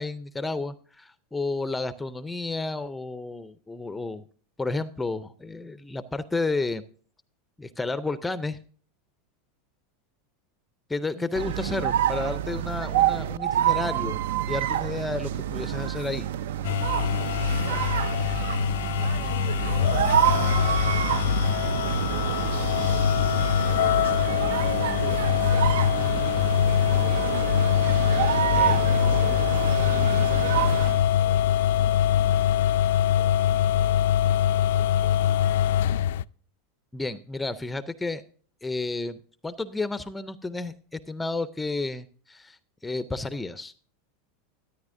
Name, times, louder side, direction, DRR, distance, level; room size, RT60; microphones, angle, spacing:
voice 1, 0.0-4.2 4.6-6.8 7.6-8.6 10.9-14.2 14.5-16.3 28.5-28.8 36.9-38.2 38.6-39.2 39.4-43.7, left 3 dB, 5° left, 0.4 m, -31 dB
sound 1, 11.3-31.0, right 11 dB, 85° right, 0.4 m, -27 dB
sound 2, 16.6-36.2, left 10 dB, 80° left, 0.3 m, -23 dB
voice 2, 17.5-28.1 28.8-31.4 31.7-32.7 33.0-34.0 34.3-35.3, right 3 dB, 60° right, 3.8 m, -48 dB
13.0 x 9.6 x 2.5 m
supercardioid pair, 150°, 0 cm